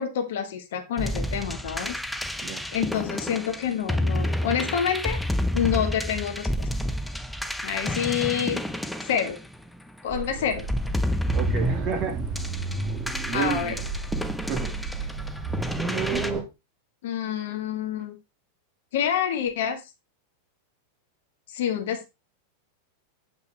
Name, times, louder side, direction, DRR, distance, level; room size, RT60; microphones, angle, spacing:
voice 1, 0.0-2.0 2.7-5.2 5.5-6.7 7.6-8.6 9.0-9.4 10.0-10.7 13.3-13.8 17.0-18.2 18.9-19.8 21.5-22.1, left 8 dB, 55° left, 1.7 m, -27 dB
sound 1, 1.0-10.0 10.6-16.3, left 1 dB, 5° left, 0.7 m, -30 dB
sound 2, 10.1-16.4, right 3 dB, 20° right, 2.3 m, -31 dB
voice 2, 11.3-12.2 13.3-13.8 14.5-14.7 16.1-16.4, right 6 dB, 35° right, 2.7 m, -30 dB
8.4 x 5.6 x 4.3 m
figure-of-eight pair, 90°, 0 cm